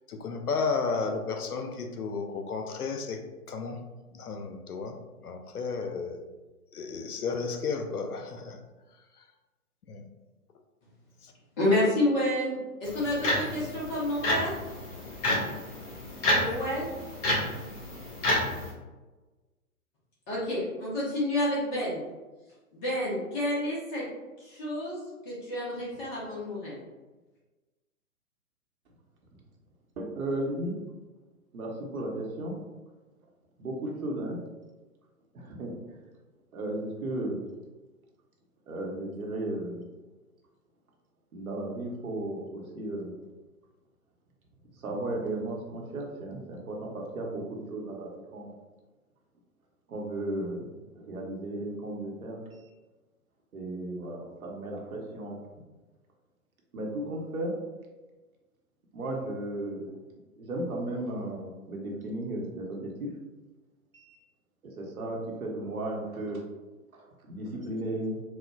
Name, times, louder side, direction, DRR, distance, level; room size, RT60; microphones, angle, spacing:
voice 1, 0.1-3.2 3.5-3.8 4.1-6.2 6.7-8.6 9.8-10.1 11.2-11.3, left 4 dB, 85° left, 6 dB, 0.6 m, -33 dB
voice 2, 11.6-12.5 12.8-14.5 16.3-16.9 20.3-22.0 22.7-24.0 24.4-26.8, left 1 dB, 15° left, -7 dB, 0.6 m, -29 dB
sound 1, 12.8-18.7, left 1 dB, 35° left, 1.4 m, -30 dB
voice 3, 30.0-30.7 31.5-32.5 33.6-34.4 35.3-36.0 36.5-37.4 38.7-39.8 41.3-43.1 44.7-48.5 49.9-52.7 53.5-55.4 56.7-57.5 58.9-59.8 60.4-63.1 63.9-64.2 64.6-66.4 66.9-68.2, right 1 dB, 70° right, -1 dB, 1.0 m, -35 dB
4.2 x 2.1 x 2.3 m, 1.2 s
figure-of-eight pair, 125°, 44 cm